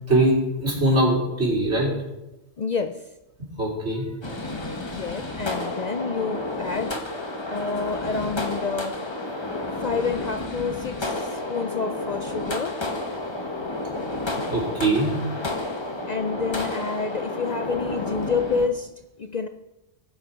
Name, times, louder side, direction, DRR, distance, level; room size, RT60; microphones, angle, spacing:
voice 1, 0.1-2.0 3.4-4.1 14.5-15.2, right 1 dB, 75° right, -4 dB, 4.2 m, -22 dB
voice 2, 2.6-3.0 4.9-6.9 7.5-9.0 9.8-12.8 16.1-18.9 19.2-19.5, left 4 dB, 50° left, 8 dB, 0.5 m, -28 dB
sound 1, 4.2-18.7, left 2 dB, 25° left, 1.1 m, -31 dB
20.0 x 6.6 x 4.4 m, 0.96 s
omnidirectional pair, 1.2 m